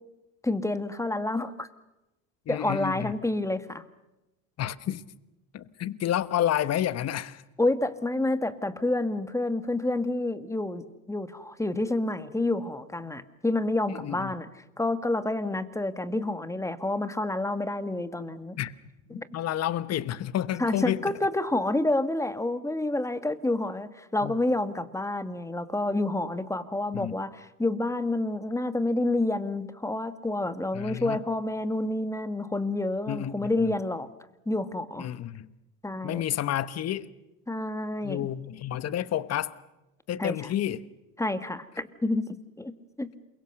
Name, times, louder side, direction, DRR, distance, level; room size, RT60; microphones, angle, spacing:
voice 1, 0.4-1.7 2.5-3.8 7.6-14.5 14.8-18.6 19.1-19.3 20.6-34.1 34.4-35.1 35.8-36.2 37.5-38.3 40.2-40.3 41.2-42.2 42.6-42.7 43.0-43.1, left 2 dB, 5° left, 1.7 m, -28 dB
voice 2, 2.5-3.1 4.6-5.0 5.5-7.4 14.0-14.3 18.6-18.7 19.1-21.0 24.2-24.4 26.9-27.2 30.7-31.2 33.1-33.8 35.0-35.5 36.0-37.1 38.0-39.5 40.1-40.8, left 11 dB, 40° left, 1.2 m, -30 dB
28.0 x 23.0 x 6.7 m
hypercardioid pair, 85°, 41 cm